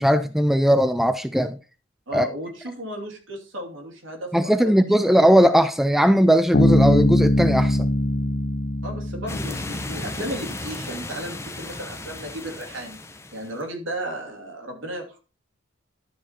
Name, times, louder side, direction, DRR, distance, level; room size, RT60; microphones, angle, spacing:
voice 1, 0.0-1.6 2.1-2.3 4.3-7.9, equal, ahead, 0.4 m, -18 dB
voice 2, 2.1-5.2 8.8-13.0 13.3-15.2, right 1 dB, 70° right, 2.7 m, -34 dB
Bass guitar, 6.5-10.0, left 1 dB, 45° left, 0.6 m, -21 dB
sound 1, 9.3-13.6, left 2 dB, 15° left, 0.7 m, -35 dB
12.0 x 5.0 x 4.4 m
head